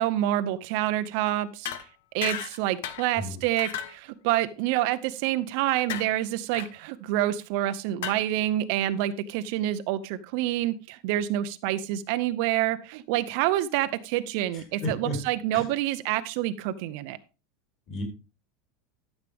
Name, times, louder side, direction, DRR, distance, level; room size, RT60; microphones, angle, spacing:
voice 1, 0.0-1.7 2.1-17.2, right 13 dB, 50° right, 12 dB, 0.6 m, -27 dB
sound 1, 1.6-1.8 2.2-2.6 2.8-3.1 3.6-4.0 5.9-6.1 6.5-6.7 8.0-8.1, left 10 dB, 80° left, 1.1 m, -33 dB
voice 2, 14.5-15.2 15.5-15.6 17.9-18.0, left 1 dB, 35° left, 2 dB, 4.2 m, -33 dB
13.0 x 7.3 x 3.5 m, 0.31 s
supercardioid pair, 175°, 0 cm